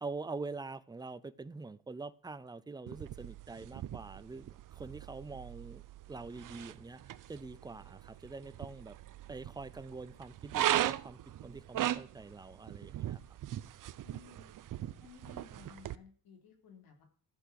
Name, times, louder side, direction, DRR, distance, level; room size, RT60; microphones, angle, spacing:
voice 1, 0.0-5.8 6.1-7.0 7.3-9.0 9.3-13.2, right 3 dB, 10° right, 14 dB, 0.6 m, -45 dB
sound 1, 2.9-15.9, right 12 dB, 65° right, 0.7 m, -39 dB
voice 2, 14.0-14.5 15.0-17.0, left 6 dB, 80° left, 4 dB, 3.8 m, -56 dB
14.5 x 8.1 x 6.5 m, 0.42 s
wide cardioid pair, 170°, 35 cm